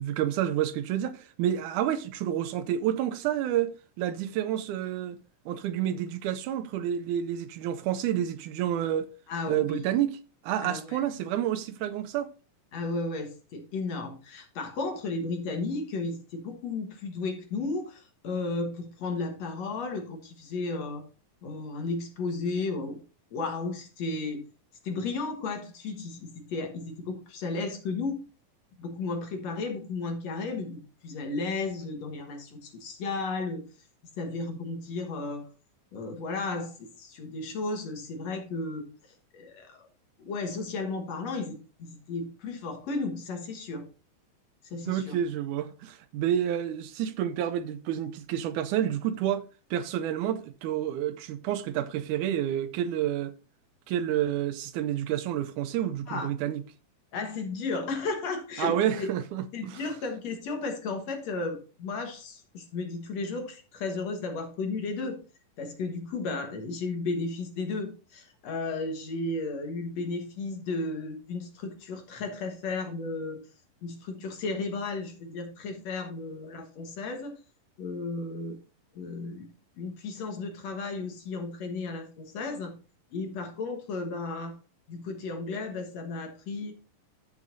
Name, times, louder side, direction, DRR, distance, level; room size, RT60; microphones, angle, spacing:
voice 1, 0.0-3.7 4.0-5.2 5.5-9.1 9.5-10.1 10.4-12.3 44.9-53.3 53.9-56.6 58.6-59.8, right 11 dB, 80° right, 1.8 m, -29 dB
voice 2, 9.3-9.8 10.6-11.1 12.7-21.0 21.4-23.0 23.3-24.4 24.8-28.2 28.8-33.6 34.2-35.5 35.9-38.9 39.3-39.9 40.2-43.9 44.6-45.2 56.1-56.3 57.1-59.1 59.5-65.2 65.6-73.4 73.8-77.4 77.8-78.6 79.0-79.5 79.8-82.7 83.1-84.5 84.9-86.7, left 3 dB, 60° left, 2.2 m, -34 dB
14.0 x 6.5 x 2.6 m
omnidirectional pair, 4.0 m